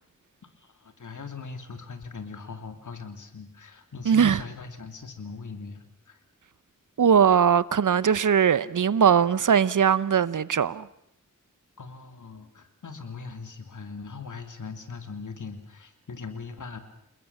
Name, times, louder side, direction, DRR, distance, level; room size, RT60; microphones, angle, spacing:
voice 1, 0.6-6.2 11.8-16.8, left 4 dB, 70° left, 3.2 m, -40 dB
voice 2, 4.1-4.4 7.0-10.9, right 7 dB, 75° right, 0.9 m, -20 dB
28.5 x 21.0 x 7.2 m
wide cardioid pair, 90°, 31 cm